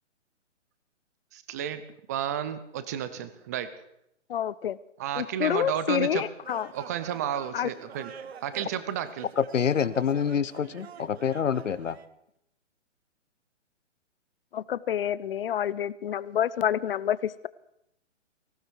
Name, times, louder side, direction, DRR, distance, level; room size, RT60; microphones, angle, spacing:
voice 1, 1.3-3.7 5.0-6.2 6.7-8.1 8.4-9.3, right 10 dB, 15° right, 13 dB, 0.5 m, -32 dB
voice 2, 4.3-4.8 5.2-6.7 7.5-7.7 14.5-17.5, left 10 dB, 50° left, 19 dB, 0.7 m, -28 dB
sound 1, 6.4-12.1, right 8 dB, 55° right, 1.1 m, -47 dB
voice 3, 9.4-12.0, left 7 dB, 85° left, 17 dB, 1.1 m, -27 dB
19.5 x 16.0 x 4.6 m, 0.79 s
hypercardioid pair, 145°, 37 cm